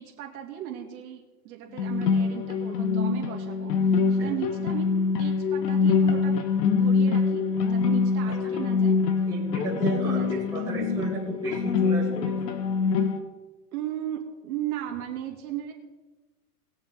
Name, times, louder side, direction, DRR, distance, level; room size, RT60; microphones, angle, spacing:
voice 1, 0.0-4.9 5.2-6.4 6.7-7.4 7.7-9.0 10.0-10.5 13.7-15.7, right 11 dB, 60° right, 0 dB, 2.9 m, -36 dB
sound 1, 1.8-13.2, left 5 dB, 80° left, 1.6 m, -24 dB
voice 2, 9.3-12.5, right 3 dB, 5° right, -9 dB, 2.3 m, -34 dB
20.0 x 7.2 x 3.9 m, 1.2 s
supercardioid pair, 160°, 48 cm